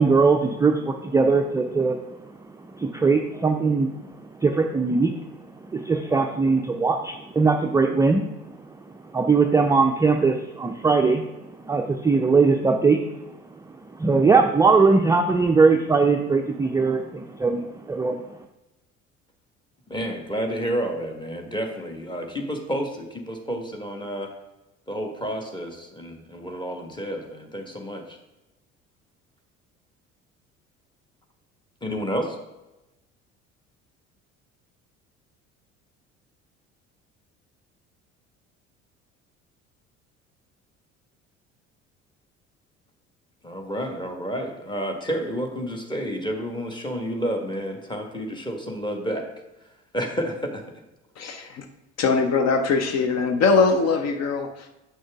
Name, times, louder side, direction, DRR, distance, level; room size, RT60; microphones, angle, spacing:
voice 1, 0.0-2.3 2.7-5.4 5.6-11.3 11.6-13.3 13.6-18.2, right 4 dB, 10° right, 4 dB, 0.4 m, -21 dB
voice 2, 19.9-24.3 24.9-28.2 31.8-32.4 43.4-49.2 49.9-50.6, equal, 10° left, 3 dB, 1.4 m, -30 dB
voice 3, 51.2-51.6 52.0-54.7, left 4 dB, 45° left, 6 dB, 0.8 m, -22 dB
8.5 x 6.2 x 3.4 m, 0.98 s
figure-of-eight pair, 60°, 38 cm